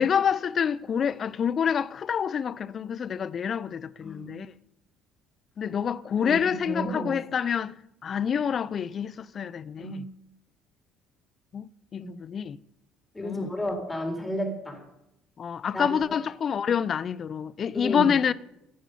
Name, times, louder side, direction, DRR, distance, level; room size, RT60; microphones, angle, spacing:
voice 1, 0.0-4.5 5.6-7.7 8.0-10.1 11.5-12.6 13.2-13.5 15.4-18.3, left 7 dB, 45° left, 0.6 m, -27 dB
voice 2, 4.0-4.4 6.2-7.1 9.8-10.0 12.0-12.1 13.1-14.8 15.7-16.2 17.7-18.2, equal, 15° left, 4.3 m, -33 dB
15.5 x 10.0 x 5.4 m
hypercardioid pair, 55°, 0 cm